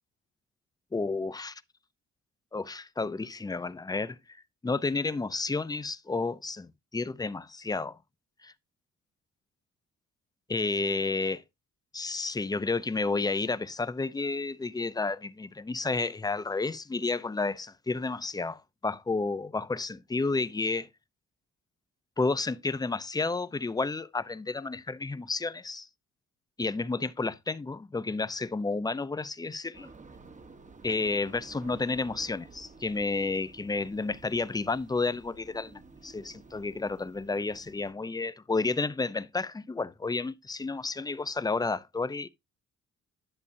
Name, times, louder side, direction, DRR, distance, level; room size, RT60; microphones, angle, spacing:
voice 1, 0.9-1.6 2.5-4.2 4.6-8.0 8.4-8.5 10.5-11.4 11.9-20.9 22.2-25.9 26.6-29.9 30.8-42.3, left 3 dB, 15° left, 0.6 m, -31 dB
sound 1, 29.7-37.9, right 4 dB, 25° right, 1.1 m, -52 dB
11.0 x 6.9 x 2.7 m
cardioid pair, 90°, 30 cm